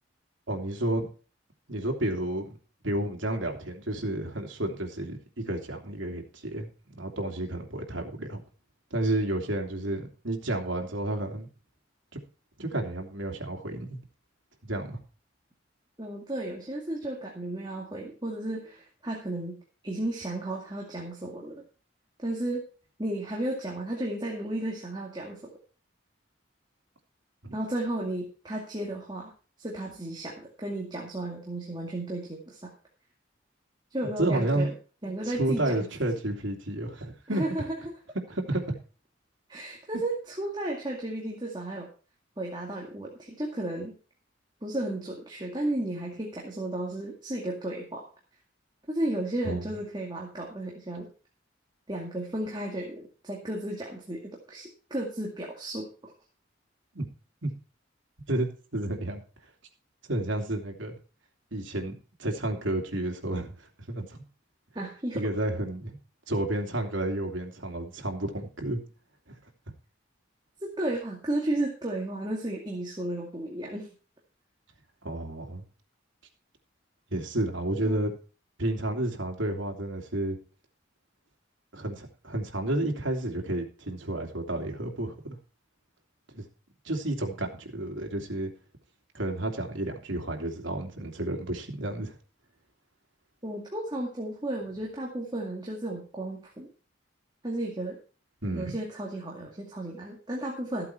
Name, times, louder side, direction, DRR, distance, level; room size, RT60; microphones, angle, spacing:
voice 1, 0.5-1.1 1.7-2.6 2.8-5.2 5.4-8.4 8.9-11.5 12.1-12.2 12.6-14.0 14.6-15.0 27.4-27.5 34.0-34.7 35.0-37.4 38.3-38.6 49.4-49.6 56.9-57.1 57.4-57.5 58.3-59.2 60.1-61.0 61.5-63.5 63.9-64.2 65.1-66.0 66.3-68.8 75.0-75.6 77.1-78.1 78.6-80.4 81.7-85.4 86.3-86.4 86.8-88.5 89.1-92.2 98.4-98.7, right 1 dB, 85° right, 2 dB, 2.8 m, -31 dB
voice 2, 16.0-21.6 22.2-22.6 23.0-25.5 27.5-29.3 29.6-32.7 33.9-34.7 35.0-35.9 37.3-37.8 39.5-41.9 42.4-43.9 44.6-48.0 48.9-51.1 51.9-56.1 64.7-65.2 70.6-73.9 77.9-78.1 93.4-96.7 97.4-98.0 98.5-100.9, right 1 dB, 25° right, -2 dB, 2.2 m, -33 dB
14.0 x 8.4 x 4.5 m, 0.38 s
head